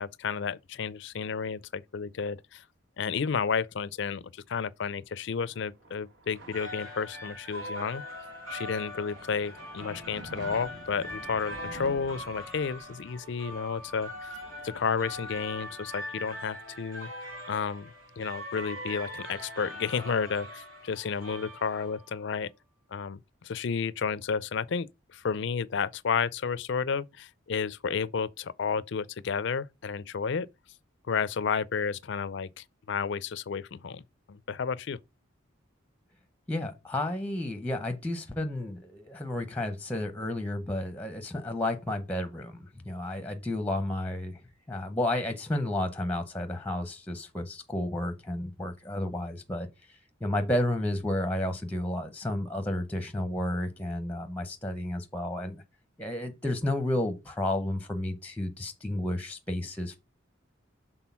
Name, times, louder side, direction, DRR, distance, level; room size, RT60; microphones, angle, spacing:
voice 1, 0.0-2.6 3.0-8.0 8.5-14.3 14.6-17.9 18.2-22.5 22.9-30.5 31.1-34.0 34.3-35.0, left 6 dB, 55° left, 0.4 m, -32 dB
sound 1, 5.2-16.5, right 2 dB, 50° right, 1.3 m, -50 dB
sound 2, 6.4-22.2, left 1 dB, 75° right, 4.0 m, -42 dB
voice 2, 36.5-44.4 44.7-55.6 56.0-60.0, left 1 dB, 5° left, 0.7 m, -32 dB
6.1 x 3.8 x 5.6 m
head